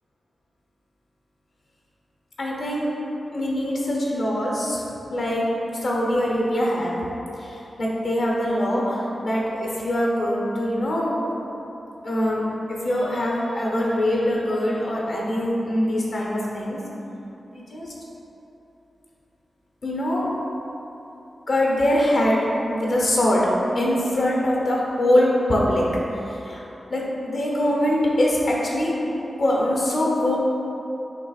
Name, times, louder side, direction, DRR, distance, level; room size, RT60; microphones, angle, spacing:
voice 1, 2.4-2.9 3.3-4.8 5.1-5.4 5.8-7.0 7.4-11.2 12.0-16.8 17.5-17.9 19.8-20.3 21.5-22.4 22.7-23.5 23.7-25.8 26.3-26.6 26.9-28.9 29.4-30.4, left 1 dB, 75° left, -4 dB, 1.0 m, -23 dB
6.3 x 3.2 x 2.4 m, 3.0 s
cardioid pair, 50°, 0 cm